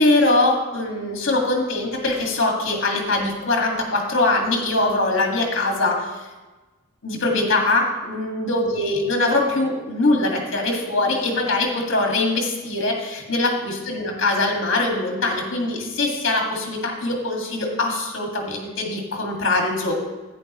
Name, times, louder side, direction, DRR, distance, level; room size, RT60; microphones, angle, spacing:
voice 1, 0.0-6.1 7.0-19.9, left 2 dB, 60° left, 1 dB, 1.9 m, -22 dB
10.5 x 9.3 x 3.1 m, 1.2 s
head